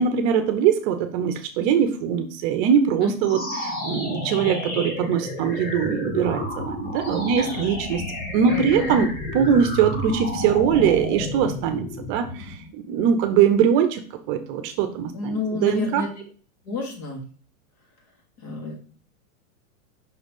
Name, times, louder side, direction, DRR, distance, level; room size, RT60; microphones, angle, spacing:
voice 1, 0.0-8.0 8.3-9.1 9.3-14.0 14.3-16.0, right 8 dB, 40° right, 8 dB, 0.8 m, -22 dB
sound 1, 3.2-12.7, left 1 dB, 20° left, 1.4 m, -31 dB
voice 2, 6.8-7.7 8.5-9.1 15.1-16.1 16.6-17.3 18.4-18.8, left 2 dB, 50° left, 1 dB, 2.7 m, -31 dB
5.8 x 3.9 x 5.3 m, 0.42 s
supercardioid pair, 140°, 42 cm